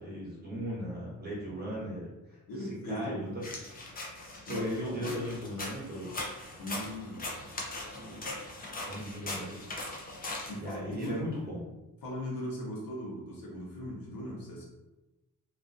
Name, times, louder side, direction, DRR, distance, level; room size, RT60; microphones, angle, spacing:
voice 1, 0.0-3.4 4.4-6.3 7.9-8.3 8.7-9.6 10.5-11.7, equal, 30° right, -5 dB, 0.8 m, -38 dB
voice 2, 2.5-3.4 4.5-5.2 6.6-7.2 10.5-11.3 12.0-14.7, equal, 90° left, -2 dB, 0.8 m, -39 dB
sound 1, 3.4-11.1, left 2 dB, 25° left, 0.4 m, -40 dB
2.4 x 2.2 x 2.5 m, 1.0 s
wide cardioid pair, 145°, 34 cm